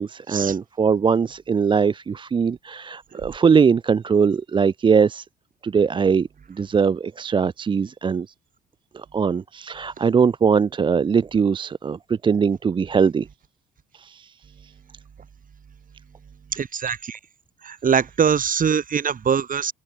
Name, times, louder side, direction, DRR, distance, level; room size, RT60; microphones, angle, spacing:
voice 1, 0.0-5.3 5.6-8.3 8.9-13.3 13.9-14.3, right 6 dB, 25° right, 0.4 m, -21 dB
voice 2, 16.5-17.2 17.6-19.7, right 7 dB, 40° right, 2.7 m, -22 dB
open air
supercardioid pair, 70°, 21 cm